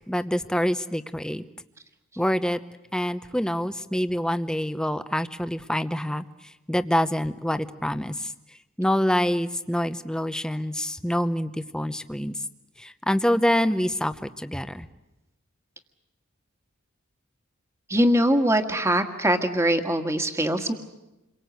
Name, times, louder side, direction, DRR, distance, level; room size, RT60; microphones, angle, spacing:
voice 1, 0.0-1.4 2.2-2.6 2.9-6.2 6.7-8.3 8.8-12.4 12.8-14.9, equal, 5° left, 11 dB, 0.8 m, -26 dB
voice 2, 17.9-20.7, right 1 dB, 15° right, 6 dB, 1.8 m, -22 dB
28.5 x 23.5 x 8.1 m, 0.99 s
head